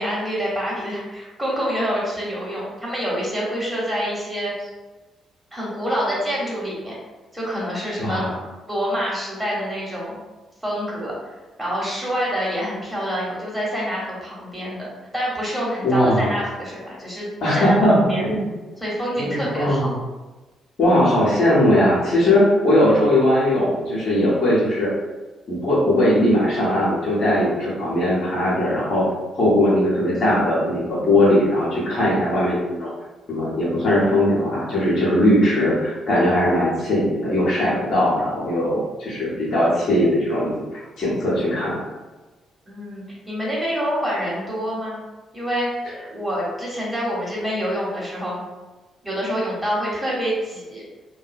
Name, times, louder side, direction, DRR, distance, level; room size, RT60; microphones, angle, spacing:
voice 1, 0.0-4.7 5.5-7.0 7.3-8.3 8.7-10.2 10.6-11.1 11.6-14.9 15.1-18.3 18.8-19.9 42.6-45.0 45.3-45.7 46.1-48.4 49.0-50.8, equal, 10° right, -6 dB, 1.3 m, -26 dB
voice 2, 8.0-8.4 15.8-16.3 17.4-18.5 19.2-19.9 20.8-24.9 25.5-29.0 29.3-32.9 33.3-40.5 40.7-41.8, left 1 dB, 60° left, -7 dB, 0.9 m, -19 dB
2.6 x 2.3 x 2.5 m, 1.2 s
figure-of-eight pair, 40°, 0 cm